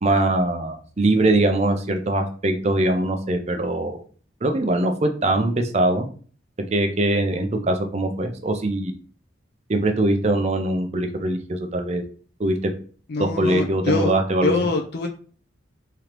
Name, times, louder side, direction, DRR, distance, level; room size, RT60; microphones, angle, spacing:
voice 1, 0.0-4.0 4.4-6.1 6.7-8.9 9.7-12.0 12.4-12.7 13.2-14.5, right 1 dB, 35° right, 5 dB, 0.5 m, -22 dB
voice 2, 13.1-14.1 14.4-15.1, left 3 dB, 50° left, 2 dB, 0.4 m, -24 dB
3.7 x 3.3 x 3.0 m, 0.41 s
head